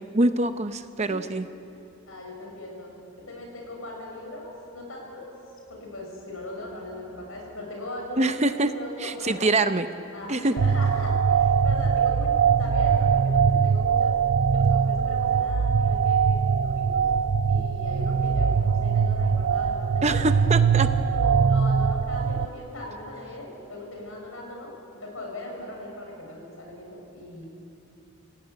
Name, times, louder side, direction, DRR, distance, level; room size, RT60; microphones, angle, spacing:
voice 1, 0.0-1.5 8.2-8.7 9.0-9.9 10.3-10.5 20.0-20.9, right 2 dB, 30° right, 9 dB, 0.8 m, -24 dB
voice 2, 0.9-1.3 1.7-2.9 3.2-5.3 5.7-8.4 8.7-9.5 10.1-14.2 14.5-17.1 17.5-20.5 21.1-27.5, left 1 dB, 70° left, 0 dB, 7.3 m, -39 dB
sound 1, 10.6-22.5, right 6 dB, 75° right, 0.5 m, -22 dB
28.0 x 17.0 x 9.4 m, 2.8 s
head